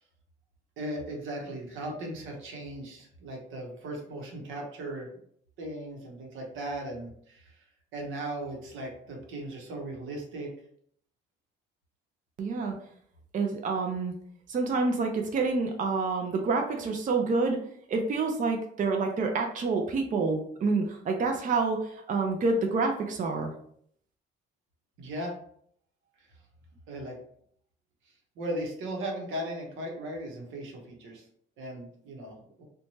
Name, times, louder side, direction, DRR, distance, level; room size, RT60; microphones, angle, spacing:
voice 1, 0.8-5.1 5.6-7.6 7.9-10.5 25.0-25.3 26.2-26.3 26.9-27.2 28.0-31.3 31.6-32.6, right 1 dB, 85° right, 0 dB, 0.8 m, -37 dB
voice 2, 12.4-12.7 13.3-14.1 14.5-17.6 17.9-23.5, right 3 dB, 40° right, 3 dB, 0.4 m, -28 dB
2.7 x 2.2 x 3.0 m, 0.65 s
cardioid pair, 90°, 20 cm